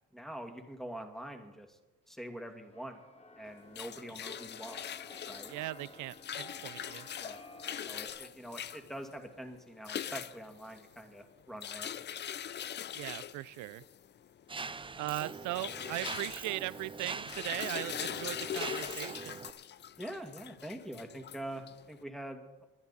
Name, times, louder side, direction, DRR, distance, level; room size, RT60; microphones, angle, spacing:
voice 1, 0.1-1.8 2.1-3.0 3.4-4.8 5.3-5.5 7.2-7.4 7.8-11.9 20.0-22.6, right 1 dB, ahead, 4 dB, 2.1 m, -44 dB
Keyboard (musical), 2.2-8.1, left 2 dB, 20° left, 1.5 m, -53 dB
sound 1, 3.5-22.0, left 9 dB, 35° left, 0.4 m, -42 dB
voice 2, 5.5-7.1 12.9-13.8 15.0-19.4, right 17 dB, 75° right, 19 dB, 0.4 m, -39 dB
Mechanisms, 14.5-19.5, right 4 dB, 15° right, 0.5 m, -43 dB
21.5 x 10.5 x 4.1 m, 1.1 s
cardioid pair, 90°, 30 cm